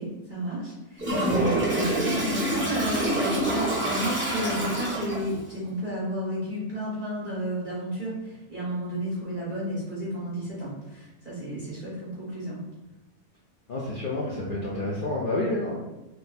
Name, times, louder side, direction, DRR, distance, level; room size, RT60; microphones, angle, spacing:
voice 1, 0.0-12.6, right 1 dB, 30° right, -10 dB, 1.1 m, -32 dB
Toilet flush, 1.0-5.4, right 1 dB, 10° right, 0.6 m, -27 dB
sound 1, 1.4-5.5, right 2 dB, 75° right, 1.0 m, -40 dB
voice 2, 13.7-15.7, left 2 dB, 80° left, -5 dB, 0.4 m, -29 dB
2.9 x 2.2 x 4.0 m, 1.0 s
omnidirectional pair, 1.6 m